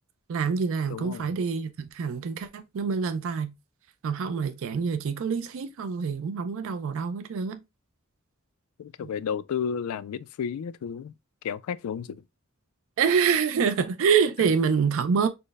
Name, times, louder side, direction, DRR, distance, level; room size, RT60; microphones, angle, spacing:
voice 1, 0.3-3.5 4.0-7.6 9.0-9.1 13.0-15.3, right 6 dB, 65° right, 0.4 m, -26 dB
voice 2, 0.9-1.3 8.8-11.1 11.4-12.2, left 7 dB, 85° left, 0.3 m, -32 dB
4.2 x 2.1 x 3.3 m
head